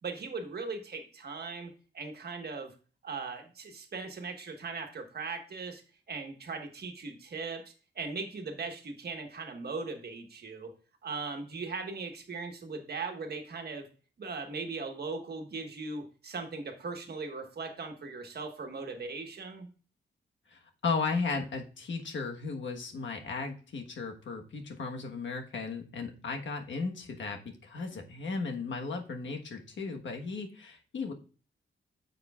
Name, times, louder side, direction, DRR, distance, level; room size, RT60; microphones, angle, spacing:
voice 1, 0.0-2.7 3.0-5.8 6.1-10.7 11.0-13.9 14.2-19.7, right 4 dB, 55° right, 4 dB, 1.4 m, -39 dB
voice 2, 20.5-31.1, left 4 dB, 75° left, 4 dB, 1.3 m, -35 dB
9.6 x 6.7 x 2.4 m, 0.38 s
wide cardioid pair, 155°, 19 cm